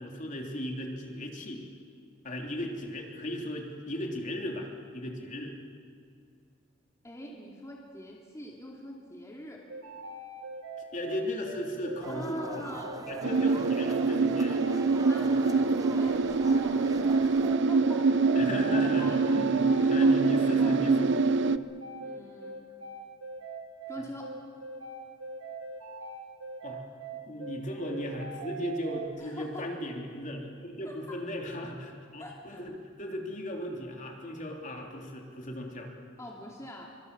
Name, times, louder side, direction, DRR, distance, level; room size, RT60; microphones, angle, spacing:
voice 1, 0.0-1.6 2.2-5.6 10.8-12.7 13.1-14.6 15.2-15.3 18.3-21.1 26.6-26.8 27.3-35.9, equal, 40° left, 1 dB, 3.3 m, -36 dB
voice 2, 7.0-9.6 12.1-13.0 15.0-18.1 18.8-19.2 19.8-20.7 22.0-22.6 23.9-24.3 29.2-29.7 30.8-31.0 32.2-32.6 36.2-36.9, left 1 dB, 15° left, -2 dB, 2.6 m, -44 dB
sound 1, 9.7-29.1, right 3 dB, 85° right, 3.3 m, -41 dB
sound 2, 12.0-17.6, right 2 dB, 20° right, 0.6 m, -43 dB
sound 3, 13.2-21.6, right 4 dB, 60° right, 0.7 m, -25 dB
26.0 x 24.5 x 6.9 m, 2.3 s
head